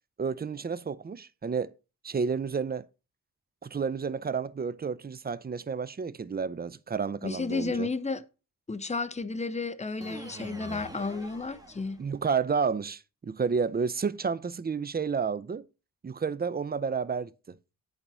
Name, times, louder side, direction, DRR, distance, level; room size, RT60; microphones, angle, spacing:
voice 1, 0.2-1.7 2.0-2.8 3.6-7.9 12.0-15.6 16.0-17.6, right 5 dB, 25° right, 0.5 m, -31 dB
voice 2, 7.2-8.2 8.7-12.0, left 3 dB, 20° left, 0.8 m, -32 dB
sound 1, 10.0-12.3, right 1 dB, 10° right, 1.5 m, -45 dB
8.8 x 4.1 x 6.1 m
cardioid pair, 75°, 36 cm